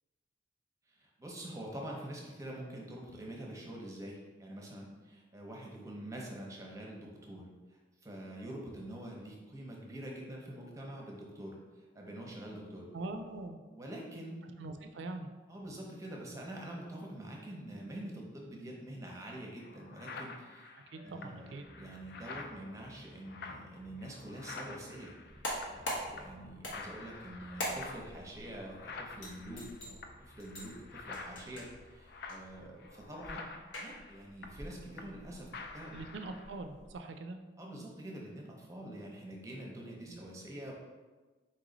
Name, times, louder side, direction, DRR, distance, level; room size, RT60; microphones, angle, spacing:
voice 1, 0.9-12.9 13.7-14.4 15.5-25.1 25.6-33.5 33.8-36.0 37.6-40.7, right 1 dB, 15° right, -1 dB, 0.7 m, -46 dB
voice 2, 12.9-13.6 14.6-15.3 20.9-21.7 35.9-37.4 40.1-40.2, right 2 dB, 70° right, 6 dB, 0.4 m, -42 dB
sound 1, 19.1-19.2 19.6-25.9 26.2-26.5 26.7-35.3 35.5-36.5, left 3 dB, 55° left, 0.4 m, -48 dB
sound 2, 21.6-32.9, right 1 dB, 30° left, 0.8 m, -61 dB
sound 3, 25.2-37.0, equal, 90° left, 1.1 m, -45 dB
4.2 x 3.1 x 3.8 m, 1.3 s
head